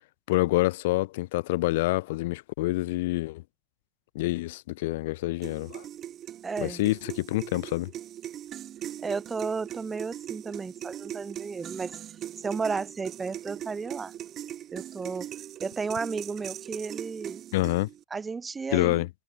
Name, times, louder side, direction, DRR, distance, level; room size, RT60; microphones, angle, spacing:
voice 1, 0.3-3.4 4.1-5.8 6.6-7.9 17.5-17.9 18.7-19.1, left 19 dB, 50° left, 0.7 m, -27 dB
sound 1, 5.4-18.0, right 11 dB, 30° right, 1.1 m, -40 dB
voice 2, 6.4-6.9 9.0-12.0 12.4-14.1 14.7-15.3 15.6-17.4 18.1-19.0, right 4 dB, 15° right, 0.8 m, -33 dB
figure-of-eight pair, 90°, 0 cm